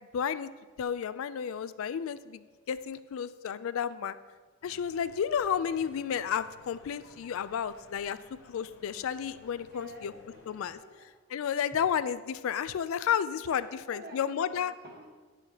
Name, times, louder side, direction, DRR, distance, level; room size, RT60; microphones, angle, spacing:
voice 1, 0.1-0.5 0.8-4.2 4.6-8.2 8.5-10.1 10.5-10.8 11.3-14.7, left 8 dB, 70° left, 15 dB, 0.3 m, -32 dB
sound 1, 4.6-10.8, left 2 dB, 50° left, 1.0 m, -57 dB
voice 2, 9.6-11.1 11.7-11.8 13.5-15.1, right 1 dB, 45° right, 0 dB, 1.4 m, -50 dB
9.7 x 7.0 x 2.9 m, 1.4 s
head